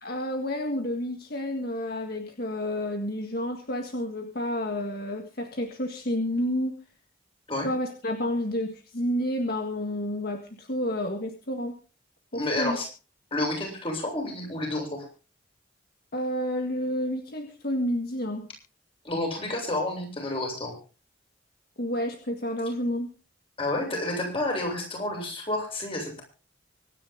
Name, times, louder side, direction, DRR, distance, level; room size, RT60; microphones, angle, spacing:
voice 1, 0.0-6.7 7.6-11.8 12.3-12.8 16.1-18.5 21.8-23.1, left 1 dB, 50° left, 4 dB, 1.7 m, -30 dB
voice 2, 12.3-12.9 13.3-15.1 19.0-20.7 23.6-26.2, left 1 dB, 30° left, 1 dB, 7.2 m, -30 dB
24.5 x 10.0 x 3.9 m, 0.36 s
head